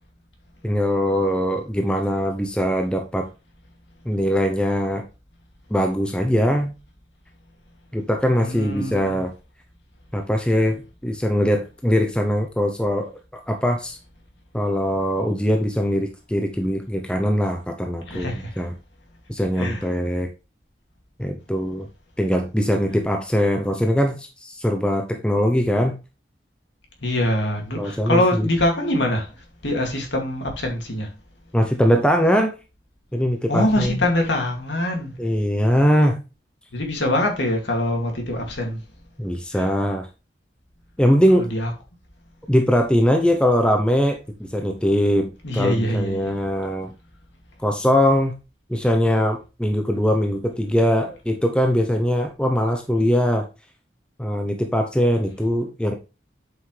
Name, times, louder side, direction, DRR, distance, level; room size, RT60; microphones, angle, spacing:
voice 1, 0.6-3.3 4.1-5.0 5.7-6.7 7.9-9.3 10.1-14.0 14.5-18.7 19.3-20.3 21.2-21.9 22.2-26.0 27.7-28.5 31.5-32.5 33.1-34.0 35.2-36.2 39.2-40.1 41.0-41.5 42.5-46.9 47.6-48.3 48.7-53.5 54.2-55.9, equal, 5° left, 0.6 m, -21 dB
voice 2, 8.4-9.2 18.1-18.5 19.6-19.9 27.0-29.3 29.6-31.1 33.5-35.1 36.7-38.8 39.5-39.7 41.5-41.7 45.4-46.4, left 1 dB, 75° left, 2.4 m, -24 dB
7.9 x 5.7 x 3.3 m
head